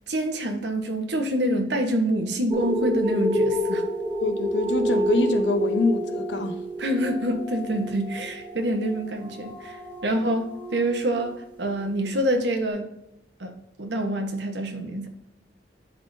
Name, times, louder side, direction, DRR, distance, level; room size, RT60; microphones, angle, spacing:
voice 1, 0.1-3.8 6.8-12.9 13.4-15.1, right 1 dB, 80° right, 1.1 m, -26 dB
sound 1, 2.5-11.4 12.0-12.1, equal, 25° right, 1.3 m, -29 dB
voice 2, 4.2-6.6, left 3 dB, 85° left, 0.9 m, -25 dB
10.5 x 3.7 x 2.7 m
head